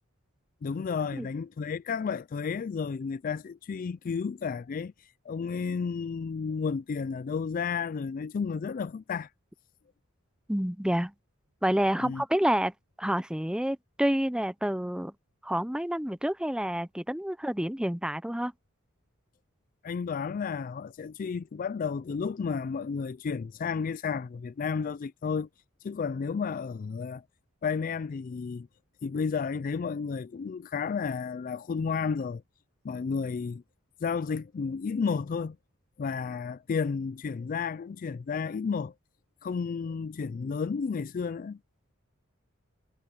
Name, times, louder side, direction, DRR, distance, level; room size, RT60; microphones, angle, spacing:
voice 1, 0.6-9.3 12.0-12.2 19.8-25.5 25.8-27.2 27.6-28.7 29.0-32.4 32.8-33.6 34.0-35.6 36.0-38.9 39.4-41.6, left 5 dB, 40° left, 0.3 m, -32 dB
voice 2, 10.5-11.1 11.6-12.7 13.0-15.1 15.4-18.5, equal, 5° right, 0.7 m, -28 dB
head